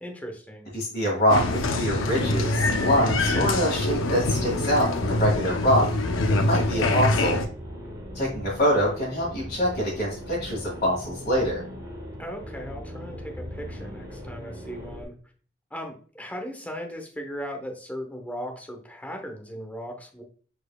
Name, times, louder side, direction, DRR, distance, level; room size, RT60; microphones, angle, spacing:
voice 1, 0.0-0.7 12.2-15.1 15.7-20.2, equal, 10° left, 2 dB, 0.8 m, -37 dB
voice 2, 0.7-5.9 6.3-7.4 8.1-11.6, equal, 40° left, -8 dB, 2.1 m, -25 dB
Applause, 1.3-7.4, left 2 dB, 75° left, 0.7 m, -24 dB
sound 1, 7.2-15.0, equal, 20° right, 1.0 m, -39 dB
4.8 x 4.3 x 2.3 m, 0.42 s
head